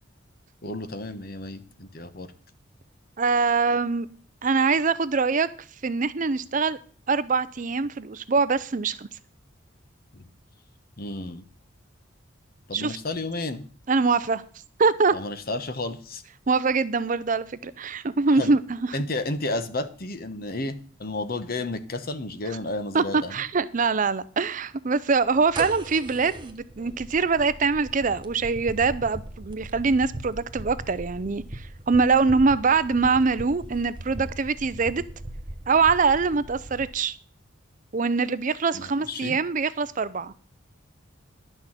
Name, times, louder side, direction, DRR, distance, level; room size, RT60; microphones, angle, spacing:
voice 1, 0.6-2.3 10.1-10.3 11.0-11.4 12.7-13.6 15.1-16.2 18.3-18.5 18.9-23.3 38.7-39.4, left 2 dB, 45° left, 10 dB, 1.1 m, -32 dB
voice 2, 3.2-4.1 4.4-5.5 5.8-6.8 7.1-9.1 12.7-13.0 13.9-14.4 14.8-15.1 16.5-19.0 22.9-35.0 35.7-37.2 37.9-40.3, right 4 dB, 40° right, 15 dB, 0.5 m, -23 dB
sound 1, 25.3-37.0, right 1 dB, 25° right, 1.0 m, -39 dB
11.0 x 6.4 x 7.4 m, 0.42 s
head